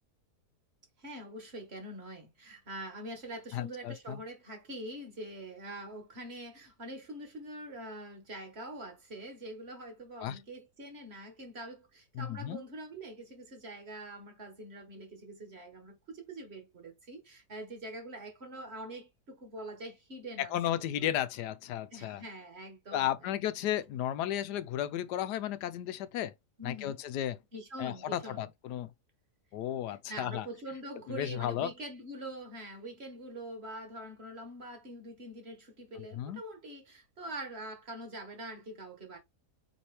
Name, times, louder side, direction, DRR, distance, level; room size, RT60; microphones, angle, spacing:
voice 1, 1.0-21.1 21.9-23.4 26.6-27.0 27.5-28.5 29.9-39.2, right 1 dB, 45° right, 1.4 m, -44 dB
voice 2, 3.5-4.2 10.2-10.4 12.1-12.6 20.4-22.2 22.9-26.3 26.6-27.4 27.8-28.9 29.5-30.5 31.1-31.7 36.1-36.4, left 11 dB, 85° left, 1.2 m, -34 dB
4.3 x 3.2 x 3.2 m
omnidirectional pair, 1.7 m